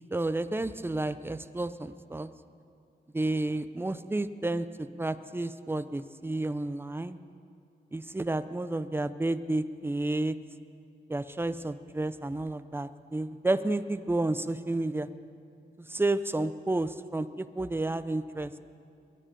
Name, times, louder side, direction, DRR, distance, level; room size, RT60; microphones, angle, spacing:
voice 1, 0.1-2.3 3.1-7.2 7.9-10.4 11.1-15.1 15.8-18.6, right 2 dB, 10° right, 13 dB, 0.5 m, -31 dB
21.5 x 10.0 x 5.1 m, 2.4 s
wide cardioid pair, 100°, 19 cm